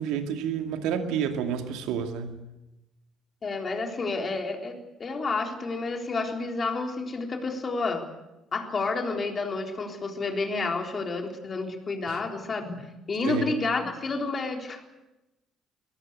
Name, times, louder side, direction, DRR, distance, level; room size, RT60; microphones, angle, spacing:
voice 1, 0.0-2.4 12.1-12.2 13.3-13.5, right 8 dB, 60° right, 6 dB, 2.3 m, -29 dB
voice 2, 3.4-4.7 5.0-8.0 8.5-14.8, left 3 dB, 35° left, 3 dB, 3.9 m, -30 dB
22.5 x 19.0 x 8.2 m, 0.98 s
figure-of-eight pair, 50°, 0 cm